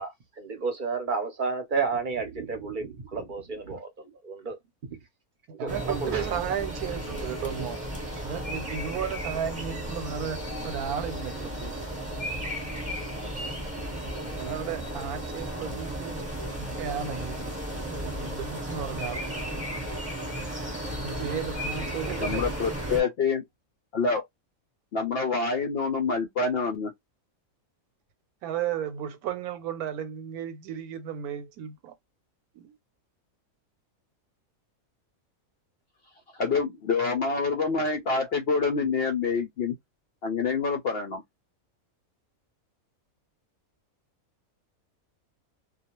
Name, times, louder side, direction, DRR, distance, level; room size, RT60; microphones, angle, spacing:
voice 1, 0.0-4.6 5.6-6.3, right 4 dB, 45° right, 0.7 m, -31 dB
voice 2, 5.6-7.8 8.2-11.8 14.3-16.2 16.8-17.4 17.8-19.3 20.9-22.5 28.4-31.9 32.5-32.8, right 8 dB, 85° right, 1.1 m, -34 dB
sound 1, 5.7-23.0, right 1 dB, 5° right, 0.9 m, -34 dB
voice 3, 22.2-23.4 23.9-24.2 24.9-26.9 36.4-39.7 40.2-41.2, left 4 dB, 65° left, 0.6 m, -26 dB
2.4 x 2.3 x 2.9 m
omnidirectional pair, 1.5 m